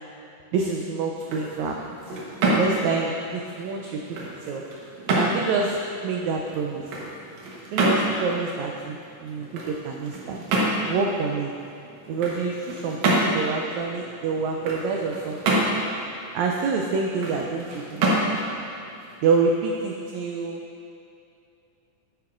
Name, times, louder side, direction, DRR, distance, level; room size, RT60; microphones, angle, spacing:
voice 1, 0.5-2.0 2.4-4.0 4.5-4.6 5.1-5.8 6.0-6.8 7.7-9.0 9.2-10.4 10.9-11.5 12.1-13.0 13.2-15.6 16.3-18.6 19.2-20.6, right 4 dB, 85° right, 1 dB, 1.6 m, -27 dB
sound 1, 1.1-19.9, right 2 dB, 65° right, 2.3 m, -28 dB
9.5 x 9.5 x 2.5 m, 2.6 s
omnidirectional pair, 3.8 m